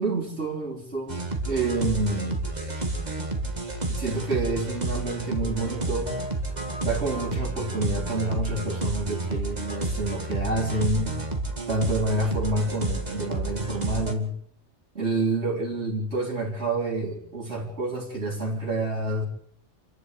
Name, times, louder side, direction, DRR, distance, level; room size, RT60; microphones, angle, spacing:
voice 1, 0.0-2.5 3.9-6.1 6.8-11.2 11.7-14.3 14.9-19.2, right 2 dB, 65° right, -4 dB, 4.1 m, -28 dB
sound 1, 1.1-14.1, right 2 dB, 35° right, 2.3 m, -30 dB
28.0 x 11.5 x 8.2 m, 0.67 s
omnidirectional pair, 1.2 m